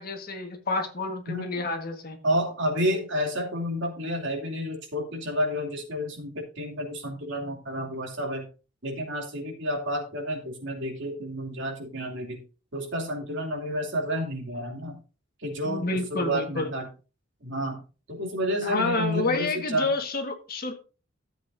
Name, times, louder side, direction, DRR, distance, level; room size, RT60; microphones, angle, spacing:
voice 1, 0.0-2.2 15.6-16.7 18.6-20.7, left 2 dB, 50° left, 5 dB, 1.6 m, -29 dB
voice 2, 2.2-8.5 8.8-12.4 12.7-15.0 15.4-16.9 17.4-17.8 18.1-19.9, equal, 65° right, 1 dB, 2.9 m, -30 dB
13.5 x 7.8 x 2.7 m, 0.34 s
head